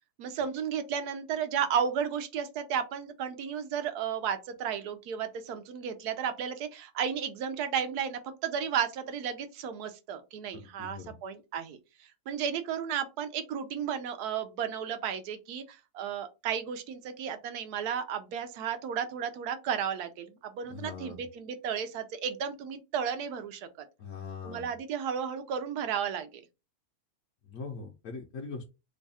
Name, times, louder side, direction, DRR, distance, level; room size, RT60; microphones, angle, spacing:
voice 1, 0.2-11.8 12.3-23.8 24.4-26.4, right 8 dB, 80° right, 1.1 m, -33 dB
voice 2, 10.5-11.1 20.7-21.2 24.0-24.7 27.5-28.7, left 4 dB, 65° left, 0.9 m, -41 dB
3.2 x 2.3 x 4.0 m
omnidirectional pair, 1.7 m